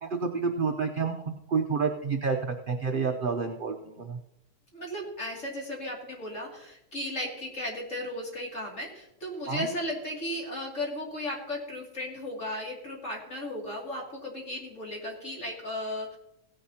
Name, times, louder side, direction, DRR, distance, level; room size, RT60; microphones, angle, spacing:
voice 1, 0.0-1.2 1.5-4.2 9.5-9.7, right 5 dB, 55° right, 4 dB, 0.6 m, -29 dB
voice 2, 4.7-16.2, left 1 dB, 45° left, -2 dB, 2.9 m, -35 dB
17.0 x 10.0 x 2.8 m, 0.84 s
omnidirectional pair, 1.8 m